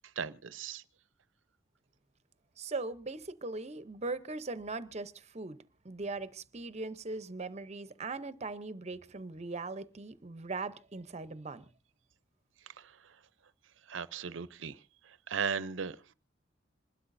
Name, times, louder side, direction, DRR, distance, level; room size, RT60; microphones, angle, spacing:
voice 1, 0.2-0.8 12.7-13.2 13.9-16.0, right 6 dB, 75° right, 0.6 m, -37 dB
voice 2, 2.6-5.6 5.8-11.6, right 3 dB, 35° right, 0.7 m, -39 dB
27.0 x 12.5 x 2.6 m
head